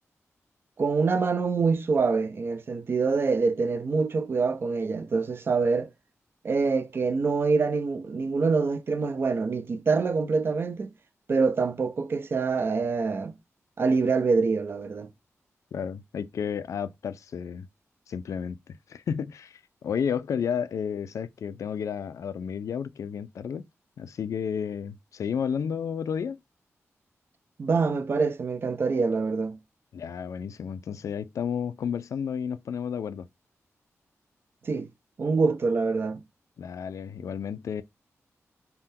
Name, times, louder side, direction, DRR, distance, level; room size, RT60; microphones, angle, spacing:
voice 1, 0.8-5.9 6.4-10.9 11.3-13.4 13.8-15.1 27.6-29.6 34.6-34.9 35.2-36.2, right 4 dB, 45° right, 0.4 m, -25 dB
voice 2, 15.7-17.7 18.1-23.7 24.0-26.4 29.9-33.3 36.6-37.8, left 7 dB, 80° left, 0.3 m, -32 dB
3.5 x 2.2 x 2.6 m
wide cardioid pair, 130°, 5 cm